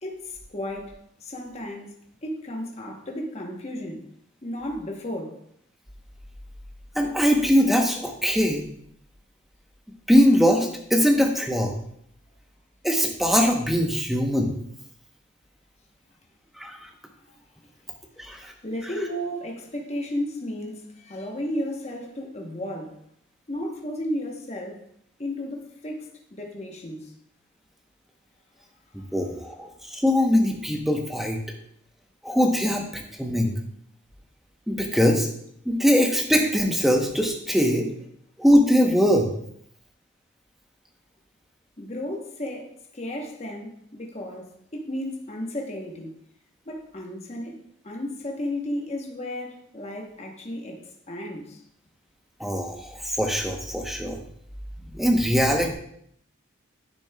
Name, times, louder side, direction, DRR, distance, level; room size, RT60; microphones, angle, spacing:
voice 1, 0.0-0.9 1.2-1.9 2.2-4.1 4.4-5.4 17.3-17.4 18.6-23.0 23.5-24.8 25.2-27.1 29.0-29.1 32.6-32.7 41.8-46.1 46.7-51.6, left 1 dB, 30° left, 1 dB, 0.9 m, -34 dB
voice 2, 7.0-8.6 10.1-11.7 12.8-14.5 16.6-16.9 18.2-18.5 29.1-31.4 32.2-33.5 34.7-35.3 35.7-37.9 38.4-39.3 52.4-54.2 54.9-55.7, equal, ahead, 1 dB, 0.8 m, -21 dB
10.5 x 6.1 x 2.2 m, 0.68 s
head